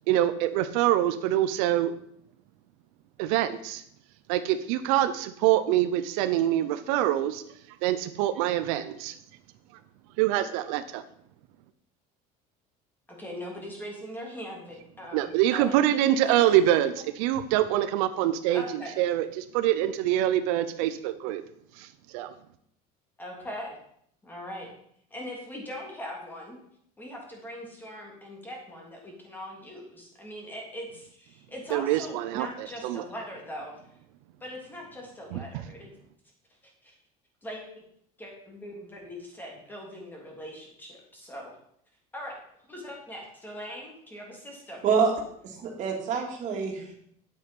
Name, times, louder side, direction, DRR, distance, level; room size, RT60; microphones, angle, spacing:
voice 1, 0.1-1.9 3.2-3.8 4.3-7.4 7.8-9.1 10.2-11.0 15.1-18.6 19.0-21.4 21.8-21.9 22.1-22.3 31.7-33.0 35.3-35.6, right 12 dB, 90° right, 10 dB, 0.8 m, -25 dB
voice 2, 13.2-15.8 16.2-16.8 18.5-18.9 23.2-23.8 24.2-24.7 25.1-26.6 27.0-33.8 34.4-35.9 36.8-36.9 37.4-37.6 38.2-41.5 42.1-42.4 42.7-44.8, equal, 10° left, -1 dB, 3.2 m, -41 dB
voice 3, 45.4-46.9, right 6 dB, 45° right, 1 dB, 2.7 m, -26 dB
9.4 x 8.1 x 5.4 m, 0.69 s
cardioid pair, 145°, 17 cm